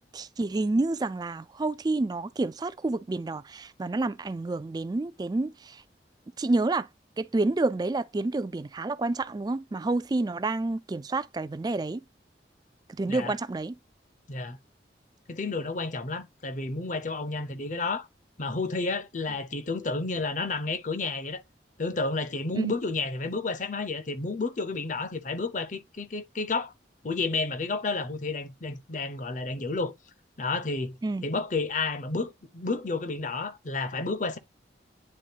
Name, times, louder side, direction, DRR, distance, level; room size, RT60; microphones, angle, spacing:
voice 1, 0.1-5.8 6.4-6.9 7.2-12.0 12.9-13.8 22.5-22.7 31.0-31.3, right 2 dB, 25° right, 0.3 m, -29 dB
voice 2, 15.3-18.1 18.4-21.4 21.8-26.7 27.0-29.9 30.4-31.0 31.2-34.4, left 3 dB, 45° left, 0.8 m, -31 dB
9.8 x 3.7 x 2.8 m
head